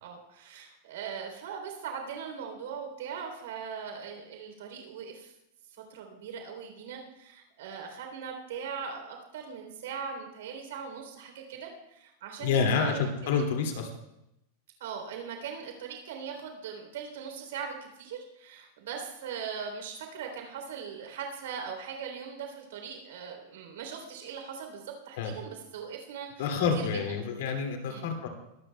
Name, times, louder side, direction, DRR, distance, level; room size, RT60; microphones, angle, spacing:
voice 1, 0.0-5.3 5.9-13.4 14.8-26.9 27.9-28.1, right 6 dB, 75° right, 3 dB, 3.3 m, -40 dB
voice 2, 12.4-13.9 25.2-25.3 26.4-28.3, left 5 dB, 65° left, 2 dB, 2.3 m, -28 dB
22.0 x 14.5 x 2.3 m, 0.84 s
supercardioid pair, 175°, 0 cm